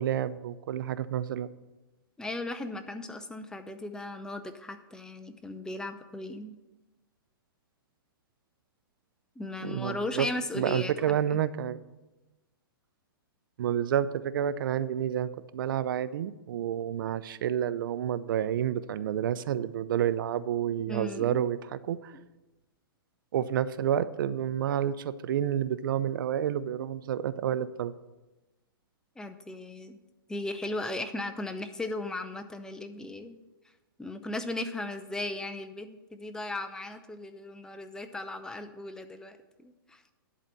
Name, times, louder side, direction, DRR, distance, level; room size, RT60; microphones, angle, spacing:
voice 1, 0.0-1.5 9.6-10.3 10.5-11.8 13.6-21.6 21.9-22.2 23.3-27.9, right 10 dB, 65° right, 16 dB, 0.5 m, -29 dB
voice 2, 2.2-6.6 9.4-11.4 20.9-21.5 22.1-22.2 29.2-30.0 30.3-33.4 34.0-40.0, left 2 dB, 5° left, 8 dB, 0.6 m, -37 dB
11.0 x 4.1 x 7.5 m, 1.1 s
hypercardioid pair, 125°, 12 cm